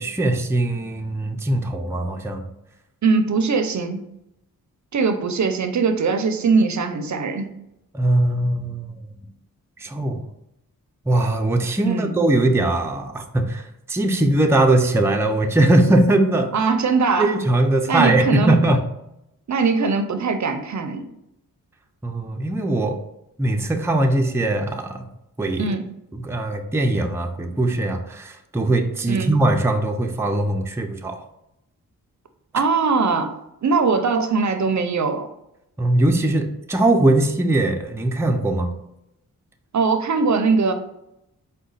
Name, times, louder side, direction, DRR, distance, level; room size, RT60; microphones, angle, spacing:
voice 1, 0.0-2.5 7.9-9.0 9.8-10.2 11.1-16.5 17.2-18.8 22.0-23.0 23.4-25.1 25.4-25.8 26.1-31.2 35.8-38.7, right 1 dB, 5° right, 4 dB, 0.5 m, -20 dB
voice 2, 3.0-4.0 4.9-7.5 11.9-12.1 16.5-17.4 17.9-18.5 19.5-21.0 25.6-25.8 29.1-29.4 32.5-33.4 33.6-35.3 39.7-40.7, right 4 dB, 50° right, 7 dB, 0.6 m, -21 dB
4.8 x 2.2 x 3.9 m, 0.83 s
cardioid pair, 55°, 36 cm